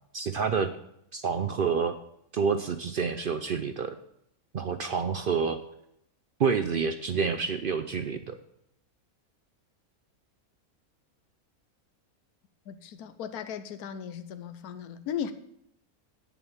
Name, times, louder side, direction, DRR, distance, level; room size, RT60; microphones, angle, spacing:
voice 1, 0.1-0.7 1.1-1.9 2.3-4.0 4.5-5.6 6.4-8.4, right 6 dB, 65° right, 0.5 m, -28 dB
voice 2, 12.7-15.3, left 8 dB, 85° left, 1.2 m, -36 dB
8.6 x 7.1 x 7.2 m
omnidirectional pair, 1.6 m